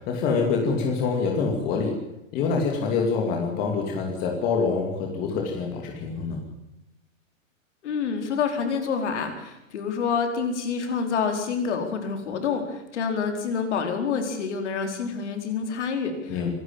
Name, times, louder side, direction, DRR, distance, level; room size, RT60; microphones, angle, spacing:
voice 1, 0.0-1.9 2.3-6.4 16.3-16.5, left 5 dB, 20° left, 1 dB, 2.7 m, -25 dB
voice 2, 7.8-16.5, left 5 dB, 55° left, 5 dB, 4.5 m, -27 dB
26.0 x 12.0 x 8.9 m, 0.90 s
hypercardioid pair, 170°, 41 cm